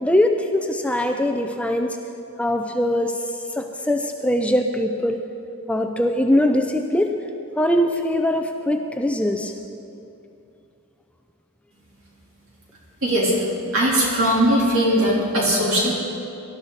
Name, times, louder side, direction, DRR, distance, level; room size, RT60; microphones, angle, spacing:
voice 1, 0.0-2.0 2.4-3.1 3.6-5.3 5.7-7.2 7.6-9.5, left 1 dB, 5° left, 4 dB, 0.5 m, -21 dB
voice 2, 13.0-13.3 13.7-16.0, right 1 dB, 65° right, -4 dB, 3.6 m, -19 dB
18.5 x 12.0 x 4.1 m, 2.8 s
head